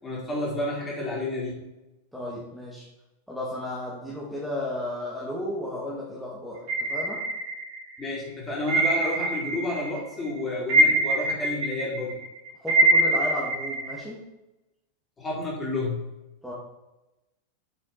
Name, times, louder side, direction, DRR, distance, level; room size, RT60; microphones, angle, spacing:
voice 1, 0.0-1.6 8.0-12.2 15.2-16.0, left 2 dB, 20° left, -3 dB, 4.1 m, -30 dB
voice 2, 2.1-2.8 3.3-7.2 12.6-14.2 16.4-16.5, left 1 dB, ahead, -6 dB, 2.4 m, -34 dB
sound 1, 6.7-8.0 8.7-10.0 10.3-14.0, right 2 dB, 45° right, 2.2 m, -24 dB
9.4 x 8.2 x 4.4 m, 0.99 s
figure-of-eight pair, 90°, 0 cm